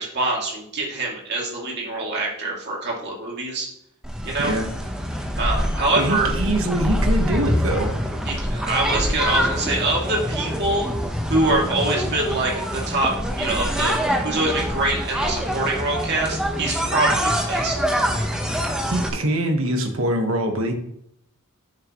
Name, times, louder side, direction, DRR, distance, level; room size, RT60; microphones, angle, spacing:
voice 1, 0.0-3.7 4.2-4.5 5.4-6.3 8.2-13.1 13.4-17.8, right 2 dB, 50° right, -3 dB, 2.6 m, -24 dB
sound 1, 4.0-19.1, equal, 5° right, 1.0 m, -25 dB
voice 2, 6.0-7.9 18.9-20.7, right 1 dB, 65° right, 5 dB, 1.5 m, -23 dB
11.0 x 6.7 x 3.1 m, 0.74 s
head